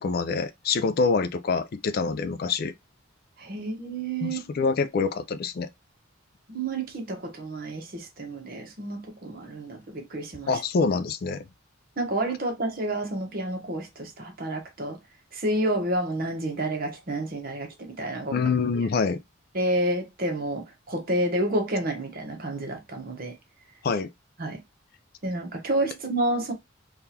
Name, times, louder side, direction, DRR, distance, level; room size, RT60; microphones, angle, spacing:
voice 1, 0.0-2.7 4.2-5.7 10.5-11.5 18.3-19.2 23.8-24.1, left 4 dB, 50° left, 0.3 m, -26 dB
voice 2, 3.4-4.4 6.5-10.6 12.0-15.0 15.3-18.4 19.5-23.4 24.4-24.6 25.2-26.5, right 1 dB, 45° right, 1.0 m, -29 dB
3.6 x 2.4 x 2.8 m
head